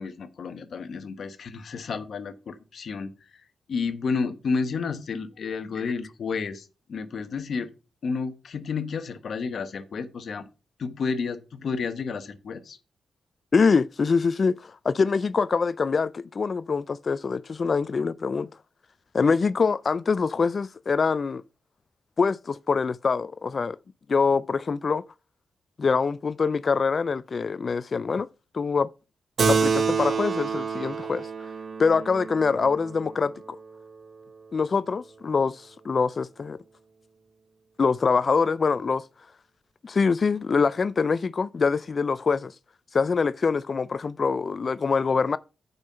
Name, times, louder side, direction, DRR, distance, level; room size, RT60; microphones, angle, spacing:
voice 1, 0.0-3.1 3.7-7.7 8.0-10.5 10.8-12.8, left 5 dB, 65° left, 1.1 m, -31 dB
voice 2, 13.5-18.5 19.1-21.4 22.2-23.8 24.1-25.0 25.8-28.3 28.5-28.9 29.5-31.3 31.8-33.6 34.5-36.6 37.8-39.0 39.8-42.5 42.9-45.4, left 5 dB, 45° left, 0.3 m, -24 dB
Keyboard (musical), 29.4-34.3, right 5 dB, 55° right, 1.0 m, -28 dB
7.9 x 5.5 x 5.6 m
cardioid pair, 90°, 0 cm